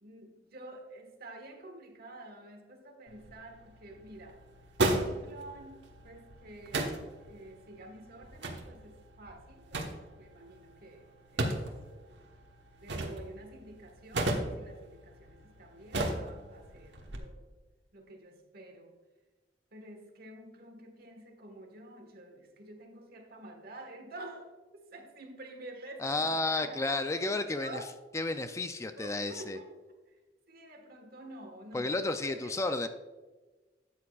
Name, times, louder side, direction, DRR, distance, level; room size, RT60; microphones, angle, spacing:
voice 1, 0.0-4.4 4.8-11.1 11.3-11.6 12.7-17.5 17.9-19.0 19.7-27.9 28.8-29.8 30.1-30.2 30.5-32.6, right 1 dB, 60° right, 4 dB, 1.4 m, -49 dB
sound 1, 3.1-17.2, right 1 dB, 90° right, 1.2 m, -37 dB
voice 2, 26.0-27.8 28.1-29.6 31.7-32.9, left 2 dB, 15° left, 9 dB, 0.3 m, -32 dB
12.5 x 8.4 x 2.3 m, 1.3 s
head